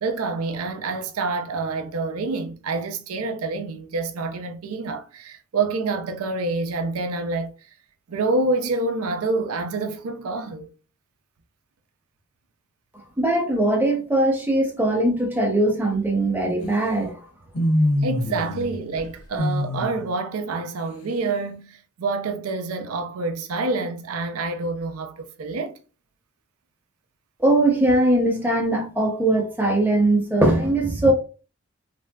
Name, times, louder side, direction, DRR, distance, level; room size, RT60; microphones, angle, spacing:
voice 1, 0.0-7.5 8.1-10.7 18.0-25.8, right 3 dB, 85° right, 0.5 m, -27 dB
voice 2, 13.2-17.1 27.4-31.1, right 1 dB, 10° right, 0.7 m, -20 dB
sound 1, 17.5-18.7 19.0-20.0, left 1 dB, 80° left, 0.7 m, -23 dB
3.3 x 2.6 x 2.2 m
head